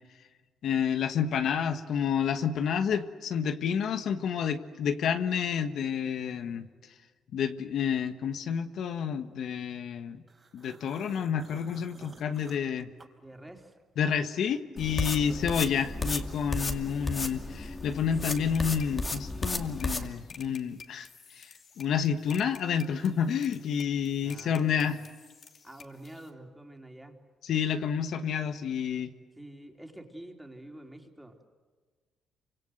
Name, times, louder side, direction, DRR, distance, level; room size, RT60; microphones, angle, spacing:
voice 1, 0.6-6.7 7.3-10.2 10.5-12.9 14.0-25.0 27.5-29.1, left 7 dB, 70° left, 8 dB, 1.4 m, -29 dB
sound 1, 10.3-13.8 14.2-15.7, right 3 dB, 30° right, 4.5 m, -54 dB
voice 2, 13.2-13.7 15.2-15.6 24.2-25.0 25.6-27.2 29.4-31.5, right 1 dB, 5° right, 3 dB, 4.0 m, -48 dB
sound 2, 14.8-20.1, left 2 dB, 25° left, 2.4 m, -34 dB
sound 3, 18.3-26.3, left 6 dB, 50° left, 2.8 m, -52 dB
28.0 x 25.5 x 8.0 m, 1.4 s
cardioid pair, 90°, 0 cm